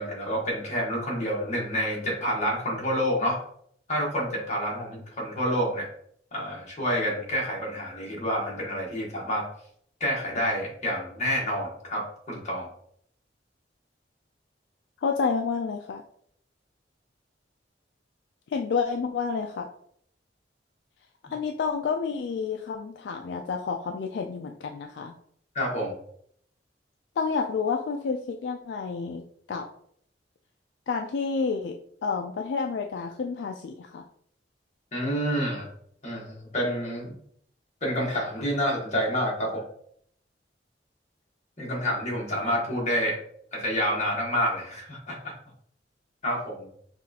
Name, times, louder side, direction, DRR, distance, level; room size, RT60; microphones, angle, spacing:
voice 1, 0.0-3.4 3.9-5.9 6.3-9.5 10.0-12.7 25.5-25.9 34.9-35.7 36.0-37.2 37.8-39.6 41.6-43.2 43.5-45.3 46.2-46.6, equal, 40° left, -2 dB, 1.4 m, -28 dB
voice 2, 15.0-16.0 18.5-19.7 21.3-25.1 27.2-29.2 29.5-29.6 30.9-31.8 32.0-34.0, left 5 dB, 70° left, 3 dB, 0.3 m, -29 dB
5.6 x 2.4 x 2.8 m, 0.65 s
head